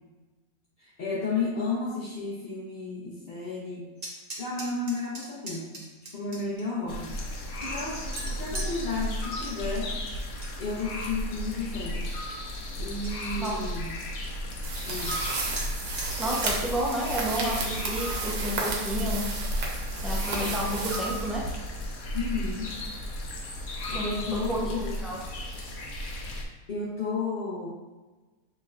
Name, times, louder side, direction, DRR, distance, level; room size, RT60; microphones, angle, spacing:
voice 1, 0.8-3.8 4.4-5.8 6.1-7.1 7.6-9.9 10.6-12.1 12.8-13.9 14.8-15.2 22.1-22.7 23.9-24.9 26.7-27.7, left 3 dB, 40° left, -7 dB, 0.8 m, -32 dB
sound 1, 4.0-6.6 7.2-8.7 10.1-10.5 10.9-11.4 11.9-12.0 12.3-12.4 12.7-12.8 13.0-13.5 15.1-15.2 15.6-15.7 16.0-16.1 16.4-16.6, right 1 dB, 35° right, 0.7 m, -39 dB
sound 2, 6.9-26.4, left 1 dB, 65° left, 1.0 m, -34 dB
sound 3, 14.6-21.8, right 3 dB, 80° right, 1.3 m, -33 dB
voice 2, 16.2-19.3 20.0-21.4 23.9-25.2, equal, ahead, -4 dB, 0.5 m, -31 dB
6.6 x 3.1 x 2.5 m, 1.2 s
omnidirectional pair, 1.6 m